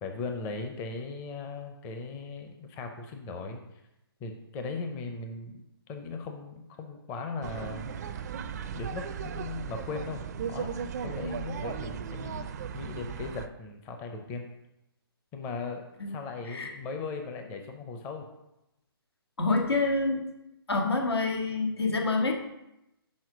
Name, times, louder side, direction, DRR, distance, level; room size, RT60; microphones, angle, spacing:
voice 1, 0.0-3.6 4.2-7.9 8.7-10.7 11.0-12.5 12.7-14.5 15.3-18.3, left 4 dB, 20° left, 4 dB, 0.6 m, -38 dB
sound 1, 7.4-13.5, right 7 dB, 45° right, 0.4 m, -36 dB
voice 2, 19.4-20.2 20.7-22.3, left 3 dB, 90° left, 0 dB, 1.7 m, -27 dB
6.3 x 4.4 x 6.0 m, 0.90 s
hypercardioid pair, 150°, 13 cm